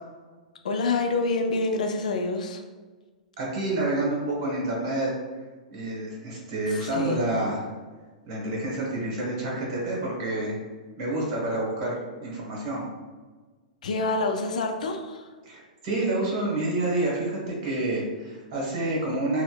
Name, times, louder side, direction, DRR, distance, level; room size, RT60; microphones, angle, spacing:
voice 1, 0.6-2.6 6.7-7.2 13.8-15.3, left 3 dB, 65° left, 4 dB, 0.4 m, -27 dB
voice 2, 3.4-5.1 5.7-7.6 8.3-10.6 11.0-12.9 15.4-19.4, right 2 dB, 45° right, -3 dB, 1.2 m, -28 dB
4.1 x 2.1 x 2.2 m, 1.4 s
figure-of-eight pair, 105°, 4 cm